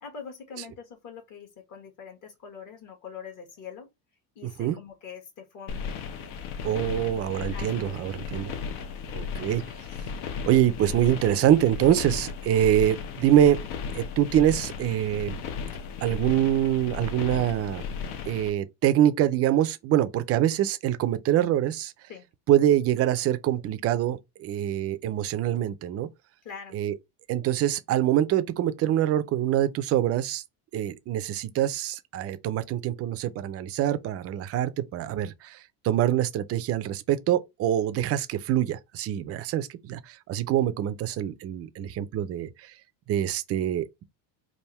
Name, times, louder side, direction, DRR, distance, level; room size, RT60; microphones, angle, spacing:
voice 1, 0.0-3.9 4.3-5.9 7.5-8.0 22.1-22.3 26.4-26.8, left 6 dB, 45° left, 1.3 m, -43 dB
voice 2, 4.4-4.8 6.6-8.5 9.1-9.6 10.5-13.6 13.9-15.4 16.0-17.8 18.3-21.9 22.5-26.1 26.7-26.9 27.3-30.4 30.7-42.7 43.1-44.0, right 11 dB, 35° right, 0.4 m, -25 dB
sound 1, 5.7-18.5, left 6 dB, 75° left, 1.0 m, -35 dB
3.5 x 2.6 x 4.2 m
cardioid pair, 140°, 44 cm